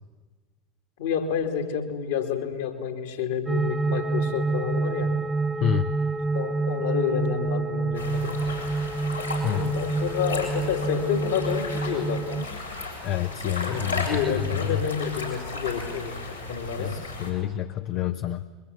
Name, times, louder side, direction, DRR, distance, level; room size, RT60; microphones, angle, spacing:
voice 1, 1.0-5.2 6.3-8.4 9.5-12.5 13.7-17.0, left 7 dB, 60° left, 4 dB, 2.8 m, -29 dB
sound 1, 3.5-12.5, right 3 dB, 10° right, 0.7 m, -28 dB
voice 2, 5.6-5.9 9.4-9.7 13.0-14.8 16.8-18.4, left 11 dB, 45° left, 9 dB, 0.8 m, -28 dB
sound 2, 7.9-17.3, left 3 dB, 90° left, 6.1 m, -35 dB
28.0 x 23.0 x 8.3 m, 1.3 s
figure-of-eight pair, 75°, 0 cm